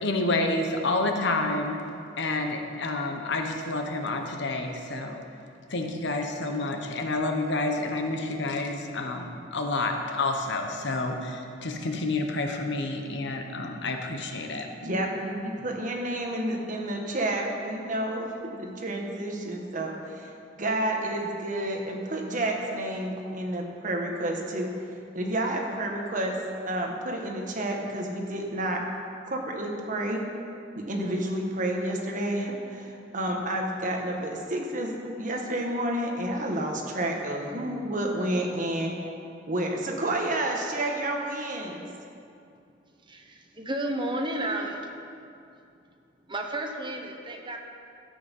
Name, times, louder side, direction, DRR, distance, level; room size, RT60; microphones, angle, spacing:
voice 1, 0.0-1.8 2.2-5.2 5.7-14.7, left 2 dB, 65° left, 4 dB, 1.1 m, -29 dB
voice 2, 14.8-20.3 20.6-24.8 25.1-26.4 26.6-28.8 29.2-30.2 30.7-34.9 35.2-38.9 39.5-41.9, right 1 dB, 45° right, 1 dB, 1.5 m, -30 dB
voice 3, 43.0-44.9 46.3-47.6, right 1 dB, 25° right, 3 dB, 1.0 m, -32 dB
13.0 x 8.4 x 5.5 m, 2.5 s
head